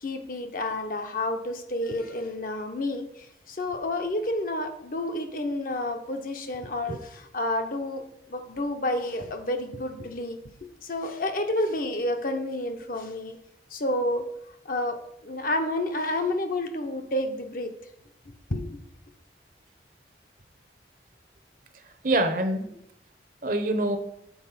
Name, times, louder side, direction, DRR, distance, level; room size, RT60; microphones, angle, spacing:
voice 1, 0.0-8.0 8.3-10.4 10.8-13.4 13.7-14.3 14.6-17.7 18.5-18.8, left 1 dB, 50° left, 5 dB, 0.8 m, -30 dB
voice 2, 21.7-22.8 23.4-24.0, right 1 dB, 50° right, 7 dB, 0.8 m, -26 dB
7.1 x 4.2 x 5.7 m, 0.75 s
head